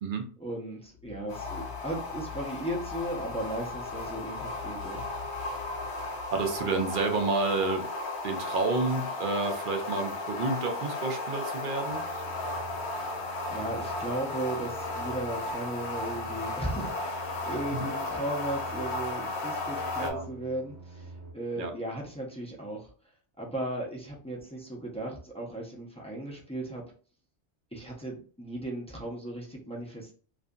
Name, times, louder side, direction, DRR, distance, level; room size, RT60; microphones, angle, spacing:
voice 1, 0.4-5.0 13.0-22.9 23.4-26.8 27.7-30.1, right 1 dB, 10° left, -3 dB, 0.4 m, -36 dB
sound 1, 0.9-8.2, left 11 dB, 40° left, 1.1 m, -47 dB
sound 2, 1.3-20.1, left 2 dB, 75° left, 0.9 m, -35 dB
voice 2, 6.3-7.9 8.2-12.2 17.7-17.9 20.0-20.2 21.6-21.7, right 3 dB, 55° right, 5 dB, 0.6 m, -30 dB
sound 3, 11.9-21.3, right 3 dB, 25° right, 0.8 m, -46 dB
2.6 x 2.4 x 2.3 m, 0.41 s
omnidirectional pair, 1.2 m